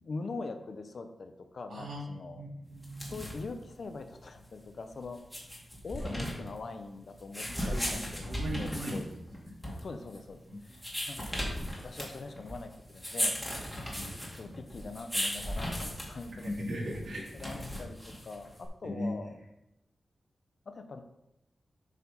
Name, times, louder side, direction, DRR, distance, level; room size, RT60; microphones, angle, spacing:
voice 1, 0.0-2.4 3.0-5.2 5.8-9.1 9.8-13.4 13.8-13.9 14.3-16.7 17.3-19.3 20.7-21.0, left 3 dB, 55° left, 7 dB, 0.8 m, -43 dB
voice 2, 1.7-3.1 6.0-6.1 7.6-9.1 9.4-9.5 10.5-10.6 13.9-14.5 16.4-17.5 18.8-19.3, equal, 80° right, -4 dB, 3.0 m, -38 dB
sound 1, 2.8-18.7, equal, 5° left, 2.1 m, -37 dB
8.1 x 4.7 x 5.5 m, 0.88 s
wide cardioid pair, 140°, 0 cm